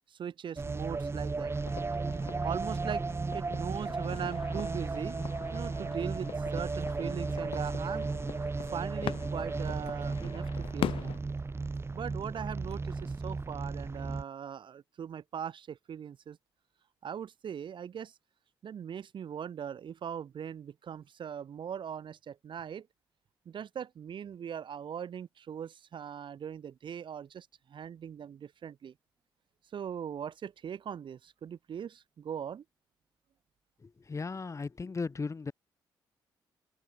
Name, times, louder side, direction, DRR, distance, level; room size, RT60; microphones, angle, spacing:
voice 1, 0.1-1.5 2.4-3.0 3.3-5.2 5.5-8.1 8.6-11.2 11.9-16.4 17.0-18.1 18.6-22.9 23.5-28.9 29.7-32.6, right 8 dB, 55° right, 0.7 m, -40 dB
sound 1, 0.6-14.2, right 3 dB, 25° right, 0.7 m, -35 dB
sound 2, 1.5-11.2, left 11 dB, 60° left, 0.5 m, -42 dB
sound 3, 6.2-6.3 6.6-9.1 9.4-9.5 9.8-11.9 12.3-12.9, left 29 dB, 85° left, 5.2 m, -75 dB
voice 2, 33.8-35.5, left 4 dB, 30° left, 0.9 m, -36 dB
open air
hypercardioid pair, 45°, 10 cm